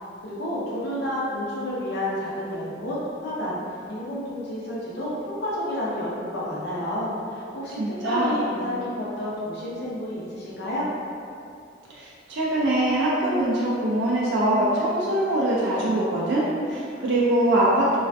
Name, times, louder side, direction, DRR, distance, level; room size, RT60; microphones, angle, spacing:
voice 1, 0.2-3.6 3.9-7.8 8.0-10.9, left 1 dB, 60° left, -8 dB, 0.6 m, -30 dB
voice 2, 7.8-8.4 11.9-18.0, right 1 dB, 60° right, -6 dB, 0.4 m, -23 dB
2.4 x 2.2 x 2.4 m, 2.4 s
head